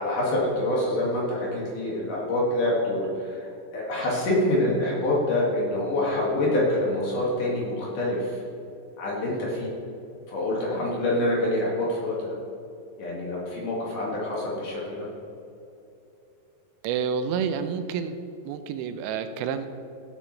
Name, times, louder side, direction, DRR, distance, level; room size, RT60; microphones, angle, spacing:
voice 1, 0.0-8.4 9.0-9.7 10.3-12.4 13.0-15.1, left 1 dB, 55° left, -4 dB, 3.2 m, -26 dB
voice 2, 16.8-18.2 18.5-19.7, right 7 dB, 85° right, 9 dB, 2.9 m, -29 dB
17.0 x 8.5 x 3.2 m, 2.7 s
omnidirectional pair, 5.0 m